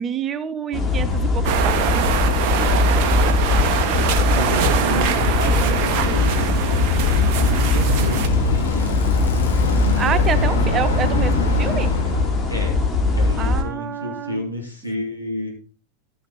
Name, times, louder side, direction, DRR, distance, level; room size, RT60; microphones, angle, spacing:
voice 1, 0.0-1.9 6.2-6.3 9.9-11.9 13.4-14.4, right 8 dB, 25° right, 14 dB, 0.9 m, -27 dB
sound 1, 0.7-13.6, left 3 dB, 20° left, 2.4 m, -20 dB
sound 2, 1.4-8.3, right 8 dB, 45° right, 1.5 m, -23 dB
voice 2, 4.3-6.5 7.0-8.4 12.5-12.8 13.1-15.5, equal, 90° left, 0 dB, 3.5 m, -30 dB
Bicycle, 4.9-12.4, left 1 dB, 65° left, 2.9 m, -26 dB
12.5 x 9.0 x 4.2 m, 0.37 s
figure-of-eight pair, 90°, 0 cm